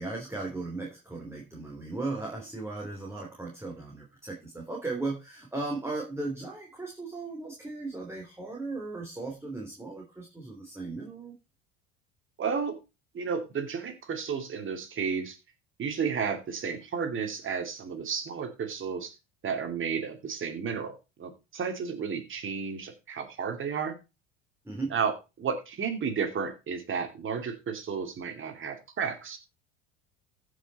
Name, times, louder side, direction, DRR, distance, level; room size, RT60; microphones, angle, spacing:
voice 1, 0.0-11.4 24.6-24.9, right 3 dB, 10° right, 0 dB, 3.2 m, -36 dB
voice 2, 12.4-12.8 13.1-15.4 15.8-19.1 19.4-24.0 24.9-29.4, right 6 dB, 40° right, 7 dB, 2.6 m, -32 dB
14.5 x 5.9 x 4.1 m, 0.27 s
hypercardioid pair, 80°, 31 cm